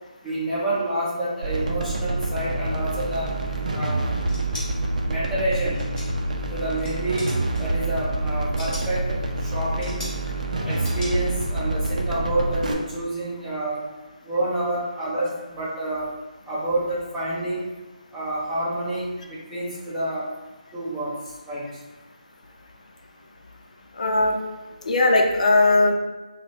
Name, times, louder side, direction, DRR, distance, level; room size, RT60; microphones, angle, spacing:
voice 1, 0.2-3.3 3.7-4.1 5.0-5.8 6.5-7.2 7.6-10.0 10.6-13.9 14.2-16.1 16.4-17.6 18.1-20.3 20.7-21.1 21.5-21.8, right 1 dB, 5° right, -11 dB, 0.7 m, -28 dB
sound 1, 1.4-12.7, right 2 dB, 65° right, 0.5 m, -27 dB
sound 2, 4.2-4.7 5.7-6.3 6.6-6.9 7.2-7.6 8.3-8.9 9.8-10.2 10.8-11.1, left 1 dB, 15° left, 1.3 m, -37 dB
voice 2, 24.0-24.4 24.8-25.9, left 2 dB, 60° left, 2 dB, 0.4 m, -18 dB
3.9 x 2.0 x 3.4 m, 1.1 s
figure-of-eight pair, 160°, 4 cm